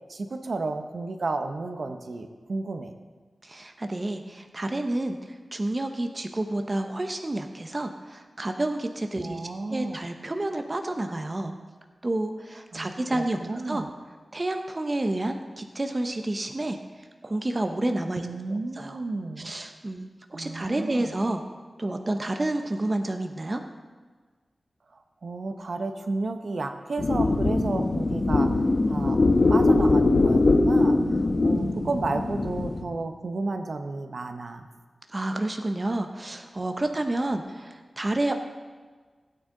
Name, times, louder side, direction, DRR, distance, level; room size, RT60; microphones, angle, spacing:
voice 1, 0.1-2.9 9.2-10.0 12.7-13.9 18.1-19.5 20.3-21.1 25.2-28.5 28.9-29.2 29.5-30.9 31.4-34.6, right 3 dB, 65° right, 7 dB, 0.8 m, -32 dB
voice 2, 3.4-5.2 5.5-11.5 12.0-13.4 13.7-13.8 14.3-16.8 17.2-18.3 18.8-19.0 19.4-21.4 21.8-23.6 35.1-38.3, right 1 dB, 30° right, 6 dB, 0.7 m, -29 dB
sound 1, 27.0-32.8, left 2 dB, 45° left, 0.9 m, -22 dB
16.5 x 9.0 x 3.8 m, 1.5 s
wide cardioid pair, 100°, 0 cm